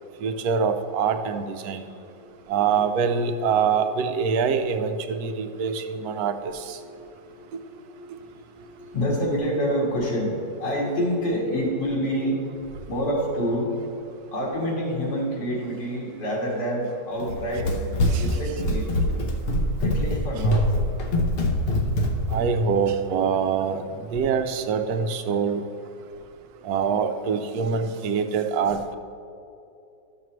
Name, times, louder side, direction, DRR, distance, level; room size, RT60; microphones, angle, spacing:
voice 1, 0.2-1.8 2.5-6.3 18.1-18.2 22.3-23.8 24.1-25.6 26.6-28.9, right 6 dB, 70° right, 1.0 m, -24 dB
voice 2, 1.6-2.9 6.8-13.9 14.3-17.7 18.2-18.9 19.8-20.7, equal, 80° left, 2.4 m, -28 dB
Run, 17.2-22.4, left 1 dB, 55° left, 0.6 m, -24 dB
12.5 x 6.7 x 3.1 m
omnidirectional pair, 1.9 m